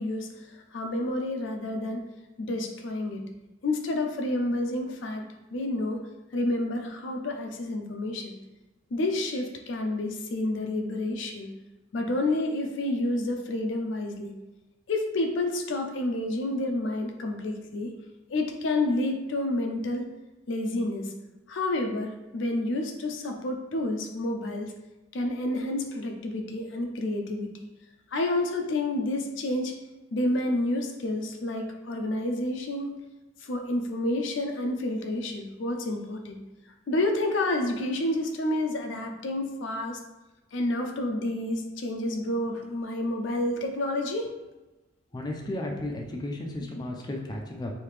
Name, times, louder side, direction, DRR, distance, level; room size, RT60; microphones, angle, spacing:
voice 1, 0.0-2.1 2.4-3.2 3.6-5.2 5.5-6.1 6.3-8.3 8.9-11.5 11.9-14.3 14.9-17.9 18.3-20.1 20.5-21.1 21.5-24.7 25.1-27.5 28.1-29.8 30.1-33.0 33.4-36.4 36.9-40.0 40.5-44.3, left 1 dB, 80° left, 4 dB, 0.5 m, -29 dB
voice 2, 45.1-47.7, left 1 dB, 20° left, 0 dB, 0.4 m, -34 dB
3.3 x 2.7 x 3.2 m, 1.1 s
head